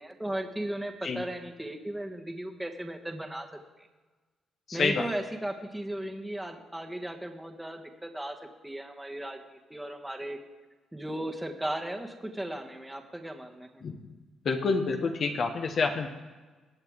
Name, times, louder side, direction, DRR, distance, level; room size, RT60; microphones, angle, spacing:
voice 1, 0.0-3.9 4.7-8.4 8.6-10.4 10.9-13.8, right 1 dB, 10° right, 3 dB, 1.3 m, -36 dB
voice 2, 4.7-5.0 13.8-14.0 14.4-16.1, left 4 dB, 50° left, 4 dB, 1.0 m, -28 dB
19.5 x 7.9 x 3.6 m, 1.3 s
cardioid pair, 90°, 0 cm